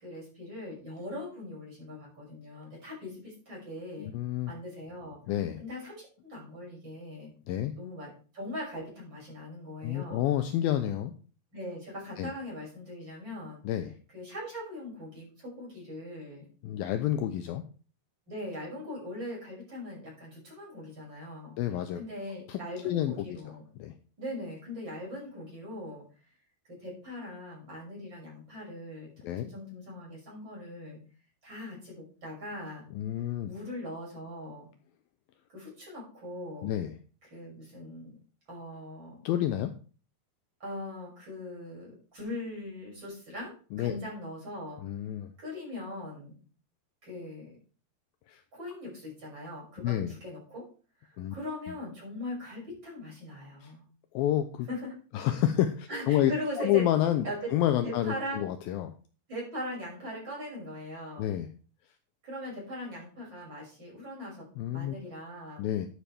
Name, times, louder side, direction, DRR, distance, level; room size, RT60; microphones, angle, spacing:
voice 1, 0.0-4.1 4.4-5.2 5.6-7.3 7.7-10.3 11.5-13.6 14.1-16.5 18.3-21.5 21.9-23.6 24.2-26.0 26.7-29.1 29.4-31.0 31.4-32.9 33.5-34.7 35.5-36.7 37.2-38.2 38.5-39.2 40.6-44.8 45.4-46.3 47.0-47.5 48.5-50.6 51.0-53.8 54.7-54.9 55.9-56.9 57.2-57.5 57.8-58.5 59.3-61.3 62.2-64.5 64.7-65.6, left 1 dB, 25° right, -4 dB, 6.9 m, -40 dB
voice 2, 4.0-4.5 5.3-5.6 7.5-7.8 9.8-11.1 12.2-12.3 13.6-13.9 16.6-17.6 21.6-22.0 22.5-22.6 22.8-23.1 23.8-23.9 29.2-29.5 32.9-33.5 36.6-37.0 39.2-39.7 43.7-44.0 44.8-45.3 48.3-48.4 49.8-50.1 51.2-51.4 53.6-53.7 54.1-54.7 55.1-56.3 56.6-57.3 57.5-58.9 61.2-61.5 64.6-64.9 65.6-65.9, left 12 dB, 80° left, 8 dB, 2.2 m, -29 dB
11.5 x 9.0 x 3.4 m, 0.38 s
omnidirectional pair, 4.7 m